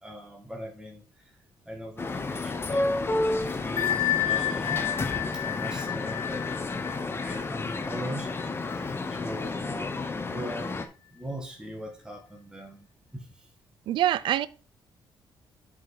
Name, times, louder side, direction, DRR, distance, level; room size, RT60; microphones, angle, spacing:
voice 1, 0.0-1.3 1.7-5.1 5.3-6.5 6.8-10.8 11.1-12.9 13.1-13.5, equal, 10° right, 1.7 m, -41 dB
sound 1, 2.0-10.9, left 3 dB, 30° left, 1.0 m, -31 dB
Bell, 3.8-9.2, left 13 dB, 80° left, 1.3 m, -31 dB
voice 2, 13.9-14.5, right 12 dB, 80° right, 0.5 m, -24 dB
7.8 x 5.0 x 4.7 m
cardioid pair, 100°, 8 cm